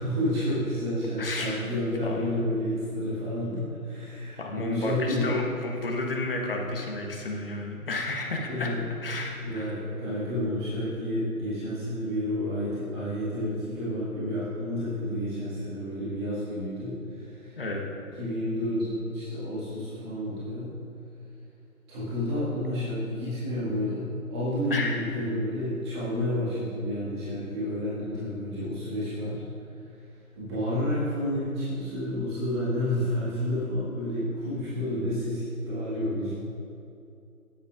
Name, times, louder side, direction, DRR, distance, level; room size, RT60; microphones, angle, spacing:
voice 1, 0.0-5.3 8.5-8.8 9.4-17.6 18.2-20.7 21.9-29.4 29.7-30.0 30.4-36.3, left 1 dB, 20° right, -11 dB, 1.9 m, -30 dB
voice 2, 1.2-1.6 2.0-2.4 4.4-8.7 9.0-9.8 17.6-17.8 24.7-24.9, left 2 dB, 40° left, 1 dB, 1.2 m, -32 dB
12.5 x 10.0 x 2.5 m, 2.7 s
figure-of-eight pair, 150°, 44 cm